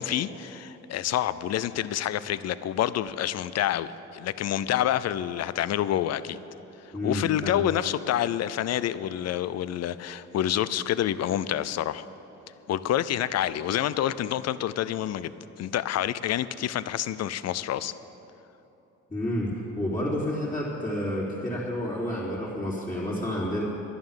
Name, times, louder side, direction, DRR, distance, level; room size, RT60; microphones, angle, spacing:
voice 1, 0.0-6.4 7.0-12.0 12.7-17.9, left 11 dB, 60° left, 16 dB, 0.5 m, -28 dB
voice 2, 6.9-7.6 19.1-23.6, left 1 dB, 20° left, -10 dB, 3.3 m, -30 dB
11.5 x 11.0 x 7.3 m, 3.0 s
cardioid pair, 90°, 30 cm